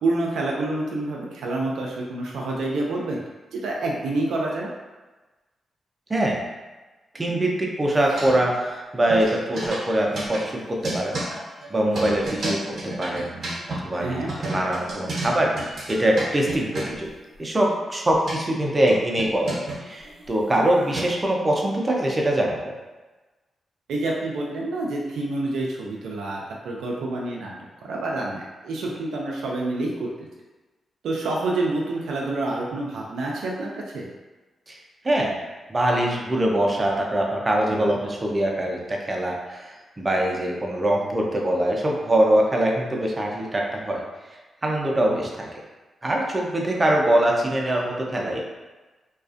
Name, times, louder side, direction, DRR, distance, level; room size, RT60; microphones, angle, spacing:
voice 1, 0.0-3.2 3.5-4.7 14.0-14.3 23.9-27.5 27.8-30.3 31.0-34.1 37.7-38.0 44.9-45.2, right 2 dB, 85° right, -2 dB, 0.3 m, -28 dB
voice 2, 7.1-11.2 11.7-14.2 14.5-17.1 17.4-22.7 34.7-34.8 35.0-35.4 35.7-44.0 44.6-45.5 46.0-48.4, right 1 dB, 30° right, -1 dB, 0.5 m, -23 dB
sound 1, 7.9-8.8 9.1-13.8 14.3-17.1 17.9-18.4 18.9-21.3, right 1 dB, 65° right, 0.7 m, -32 dB
2.4 x 2.3 x 2.4 m, 1.2 s
supercardioid pair, 55°, 0 cm